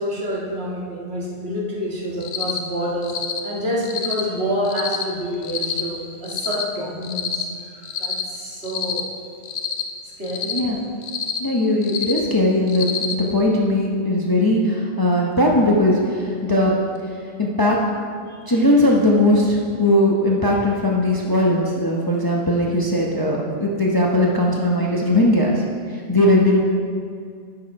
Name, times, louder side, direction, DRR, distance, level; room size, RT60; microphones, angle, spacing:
voice 1, 0.0-3.1 3.4-9.1 10.0-10.6 18.3-18.5, equal, 60° right, -5 dB, 2.0 m, -28 dB
Cricket, 2.2-2.6 3.0-3.4 3.8-4.2 4.7-5.0 5.4-5.8 6.2-6.6 7.0-7.4 7.8-8.2 8.6-9.0 9.4-9.8 10.2-10.6 11.0-11.4 11.8-12.2 12.7-13.1, left 7 dB, 75° left, 1.0 m, -27 dB
voice 2, 11.4-16.8 17.4-17.8 18.5-25.6 26.1-26.6, left 1 dB, 20° left, -3 dB, 0.9 m, -19 dB
9.7 x 6.7 x 4.8 m, 2.2 s
omnidirectional pair, 1.2 m